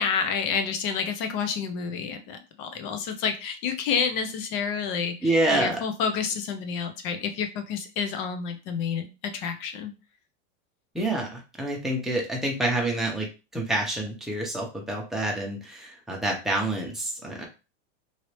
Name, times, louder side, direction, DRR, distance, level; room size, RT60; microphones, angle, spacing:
voice 1, 0.0-9.9, left 6 dB, 50° left, 7 dB, 0.8 m, -29 dB
voice 2, 5.2-5.8 10.9-13.3 13.5-17.4, right 1 dB, ahead, -2 dB, 0.7 m, -27 dB
3.1 x 2.7 x 3.2 m, 0.30 s
supercardioid pair, 150°, 35 cm